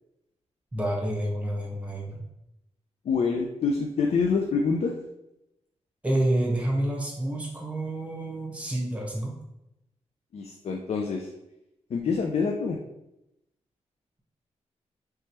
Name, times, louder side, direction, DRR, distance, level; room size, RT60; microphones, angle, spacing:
voice 1, 0.7-2.2 6.0-9.3, right 1 dB, 10° right, -2 dB, 1.0 m, -28 dB
voice 2, 3.0-4.9 10.3-11.3 11.9-12.8, left 5 dB, 60° left, 2 dB, 0.4 m, -26 dB
3.3 x 3.1 x 2.9 m, 0.89 s
wide cardioid pair, 95°, 12 cm